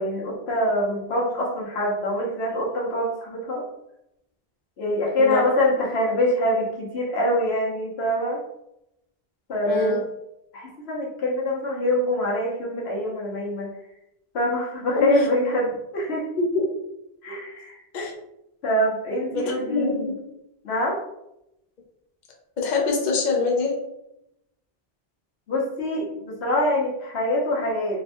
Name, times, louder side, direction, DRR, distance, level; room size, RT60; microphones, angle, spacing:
voice 1, 0.0-3.6 4.8-8.4 9.5-10.0 10.5-13.7 14.3-16.2 17.2-17.8 18.6-20.1 20.6-21.0 25.5-28.0, left 1 dB, 85° left, -4 dB, 1.2 m, -24 dB
voice 2, 9.7-10.0 14.9-15.3 16.4-16.7 17.9-18.1 19.3-20.2 22.6-23.7, left 3 dB, 50° left, 0 dB, 0.8 m, -24 dB
3.5 x 2.2 x 4.2 m, 0.85 s
omnidirectional pair, 1.0 m